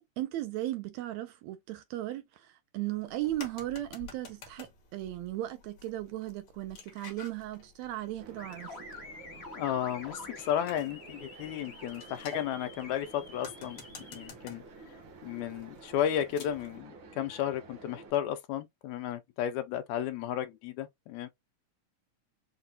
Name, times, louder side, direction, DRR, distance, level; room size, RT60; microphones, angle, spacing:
voice 1, 0.0-8.7, right 15 dB, 80° right, 1.7 m, -36 dB
sound 1, 3.0-16.8, left 5 dB, 60° left, 1.1 m, -51 dB
sound 2, 8.2-18.1, right 4 dB, 60° right, 1.3 m, -51 dB
sound 3, 8.4-14.3, left 3 dB, 40° left, 0.8 m, -48 dB
voice 2, 9.5-13.8 14.1-21.3, left 10 dB, 80° left, 1.9 m, -33 dB
5.9 x 2.3 x 2.7 m
omnidirectional pair, 3.4 m